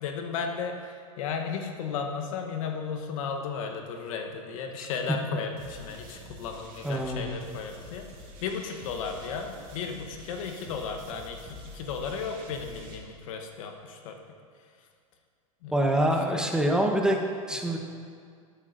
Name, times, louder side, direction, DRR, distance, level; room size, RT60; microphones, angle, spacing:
voice 1, 0.0-8.1 8.4-14.2 15.6-15.8 16.3-16.4 17.6-17.8, left 6 dB, 70° left, 4 dB, 1.1 m, -35 dB
sound 1, 5.6-13.0, equal, 45° right, 2.4 m, -47 dB
voice 2, 6.8-7.3 15.7-17.8, right 1 dB, 5° right, 2 dB, 1.0 m, -25 dB
13.0 x 9.8 x 2.6 m, 2.1 s
hypercardioid pair, 100°, 18 cm